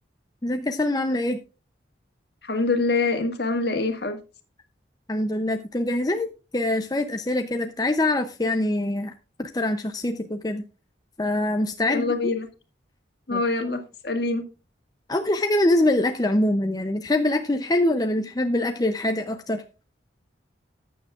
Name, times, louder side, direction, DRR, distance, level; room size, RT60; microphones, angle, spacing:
voice 1, 0.4-1.4 5.1-6.3 6.5-9.1 9.4-10.6 11.2-12.1 13.3-13.4 15.1-19.6, left 1 dB, 20° left, 0.5 m, -24 dB
voice 2, 2.4-4.2 11.9-12.5 13.3-14.4, left 3 dB, 60° left, 1.8 m, -25 dB
14.5 x 9.2 x 2.4 m
head